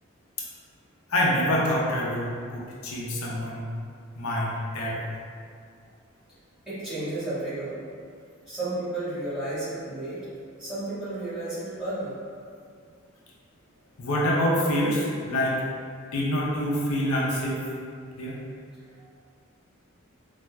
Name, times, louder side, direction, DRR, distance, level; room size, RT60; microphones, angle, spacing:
voice 1, 1.1-3.7 4.2-5.0 14.0-15.6 16.1-17.6 18.2-18.4, equal, 80° left, -5 dB, 0.6 m, -26 dB
voice 2, 6.7-7.8 8.5-10.2 10.6-12.1, right 2 dB, 5° right, -14 dB, 1.5 m, -32 dB
4.2 x 2.4 x 2.3 m, 2.2 s
head